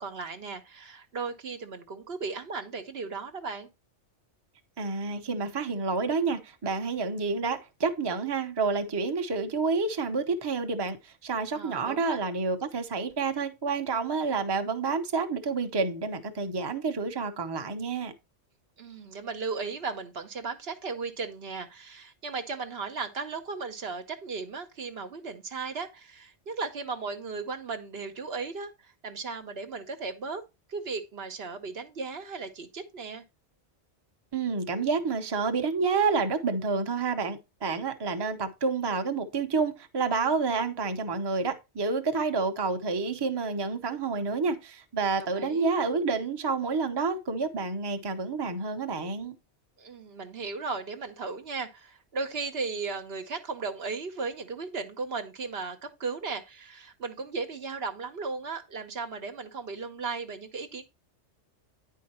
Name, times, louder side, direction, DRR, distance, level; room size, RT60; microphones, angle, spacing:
voice 1, 0.0-3.7 11.5-12.2 18.8-30.4 30.7-33.2 45.2-45.7 49.8-60.8, right 4 dB, 60° right, 1.1 m, -36 dB
voice 2, 4.8-18.1 34.3-49.4, right 4 dB, 25° right, 0.7 m, -29 dB
9.6 x 4.6 x 4.3 m
omnidirectional pair, 1.2 m